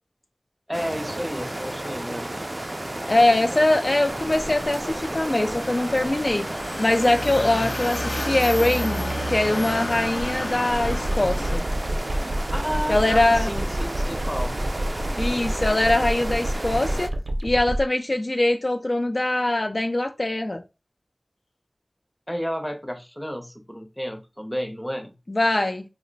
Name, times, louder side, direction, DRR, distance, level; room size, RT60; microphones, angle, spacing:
voice 1, 0.7-2.3 12.5-14.6 22.3-25.2, equal, 10° left, 0.7 m, -31 dB
sound 1, 0.7-17.1, right 1 dB, 35° right, 0.3 m, -32 dB
voice 2, 3.1-6.5 6.8-11.6 12.9-13.5 15.2-17.1 17.4-20.6 25.3-25.8, left 2 dB, 50° left, 0.3 m, -22 dB
sound 2, 4.1-11.6, equal, 75° left, 0.8 m, -31 dB
sound 3, 10.7-17.8, right 1 dB, 80° right, 0.6 m, -28 dB
2.9 x 2.1 x 3.8 m
wide cardioid pair, 55°, 0 cm